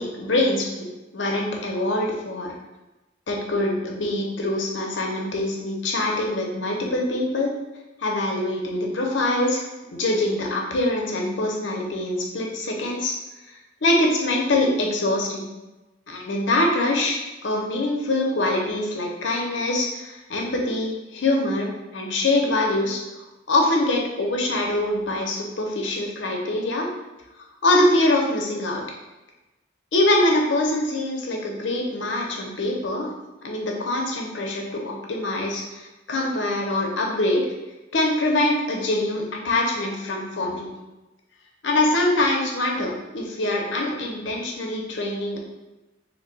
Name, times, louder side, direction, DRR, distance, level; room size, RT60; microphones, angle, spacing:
voice 1, 0.0-2.5 3.3-7.5 8.0-13.1 13.5-15.5 16.1-23.0 23.5-26.9 27.4-28.8 29.9-33.1 33.4-37.5 37.9-40.7 41.6-45.4, left 1 dB, 75° left, 0 dB, 0.6 m, -24 dB
3.1 x 2.2 x 3.9 m, 1.1 s
head